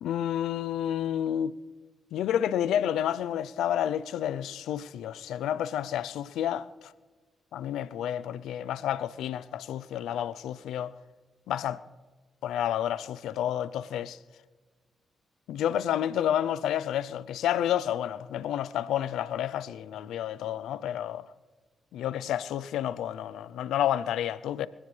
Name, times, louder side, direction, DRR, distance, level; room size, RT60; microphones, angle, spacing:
voice 1, 0.0-1.5 2.1-6.7 7.5-10.9 11.5-11.8 12.4-14.2 15.5-21.3 21.9-24.7, left 10 dB, 85° left, 0.5 m, -30 dB
24.5 x 16.5 x 3.3 m
supercardioid pair, 60°, 0 cm